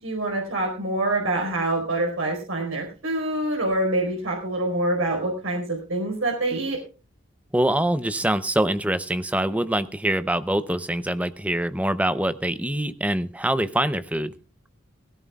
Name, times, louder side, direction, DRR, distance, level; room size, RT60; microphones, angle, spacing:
voice 1, 0.0-6.8, right 2 dB, 75° right, 0 dB, 4.6 m, -26 dB
voice 2, 7.5-14.3, right 1 dB, 5° right, 13 dB, 0.6 m, -24 dB
17.5 x 16.5 x 2.3 m, 0.35 s
head